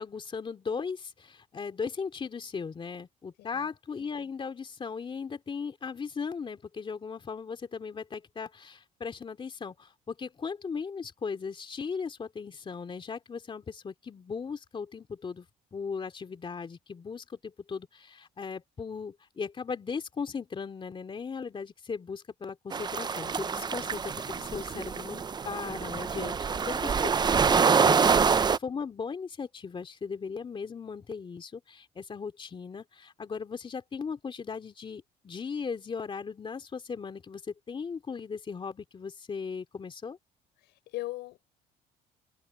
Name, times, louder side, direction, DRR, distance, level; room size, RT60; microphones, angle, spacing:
voice 1, 0.0-15.5 15.7-40.2, left 5 dB, 30° left, 2.8 m, -37 dB
voice 2, 3.4-3.7 26.7-26.8 40.6-41.4, left 18 dB, 85° left, 6.0 m, -40 dB
sound 1, 22.7-28.6, right 6 dB, 25° right, 0.6 m, -26 dB
cardioid pair, 110°, 17 cm